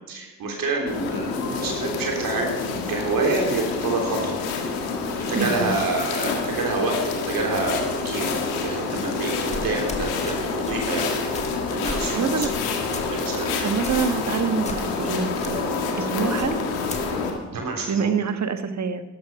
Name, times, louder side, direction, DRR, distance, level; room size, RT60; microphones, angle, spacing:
voice 1, 0.1-2.5 2.9-4.4 5.1-8.3 8.6-11.1 11.7-12.5 13.1-13.7 17.5-18.1, right 3 dB, 65° right, 1 dB, 3.3 m, -27 dB
sound 1, 0.9-17.3, left 4 dB, 90° left, 1.8 m, -27 dB
voice 2, 5.3-5.7 12.1-12.5 13.4-16.6 17.9-19.0, right 6 dB, 45° right, 10 dB, 1.3 m, -26 dB
sound 2, 9.5-10.4 10.7-10.9 11.3-11.5 11.8-12.1 12.4-12.6 12.9-13.1 13.8-14.1 14.6-15.1 15.4-15.5 16.4-17.0, left 2 dB, 20° left, 2.1 m, -34 dB
12.0 x 11.5 x 5.8 m, 1.1 s
hypercardioid pair, 50°, 37 cm